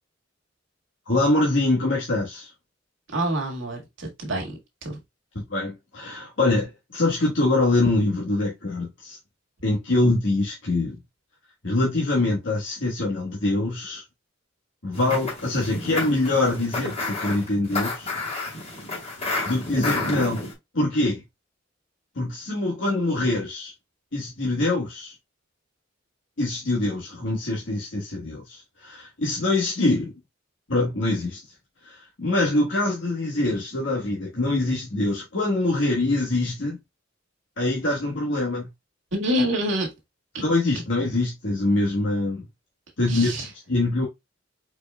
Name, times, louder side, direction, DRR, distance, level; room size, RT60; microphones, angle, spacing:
voice 1, 1.1-2.5 5.3-9.2 9.6-11.0 11.6-14.0 14.8-18.1 19.4-20.4 20.7-21.2 22.1-23.7 24.1-25.1 26.4-30.1 30.7-31.4 31.8-36.8 37.6-38.7 40.4-42.4 43.0-44.1, left 2 dB, 65° left, 1.3 m, -24 dB
voice 2, 3.1-5.0 39.1-39.9 40.3-40.4 43.1-43.5, equal, 75° right, 1.7 m, -27 dB
sound 1, 14.9-20.5, left 2 dB, 35° left, 2.7 m, -30 dB
4.7 x 4.5 x 2.2 m
head